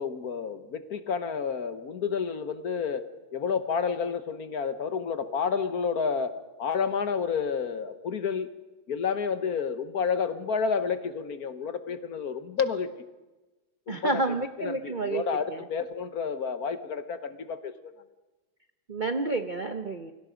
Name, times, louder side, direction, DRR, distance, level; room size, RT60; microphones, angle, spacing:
voice 1, 0.0-8.5 8.9-12.9 13.9-17.9, left 6 dB, 55° left, 11 dB, 1.4 m, -30 dB
voice 2, 13.9-15.6 18.9-20.1, right 3 dB, 45° right, 8 dB, 0.6 m, -30 dB
28.5 x 23.5 x 5.1 m, 1.2 s
omnidirectional pair, 2.2 m